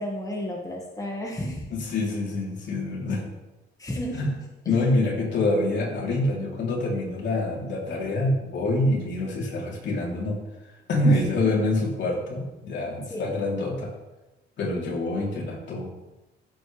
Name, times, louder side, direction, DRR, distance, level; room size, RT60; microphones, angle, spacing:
voice 1, 0.0-1.7 3.8-4.3 4.7-4.8 11.1-11.7 13.1-13.3, left 1 dB, 15° left, -1 dB, 1.9 m, -32 dB
voice 2, 1.7-3.2 4.1-4.3 4.7-10.4 10.9-13.9 14.6-15.9, left 2 dB, 65° left, -3 dB, 3.7 m, -26 dB
15.0 x 7.7 x 3.5 m, 1.0 s
cardioid pair, 90°, 20 cm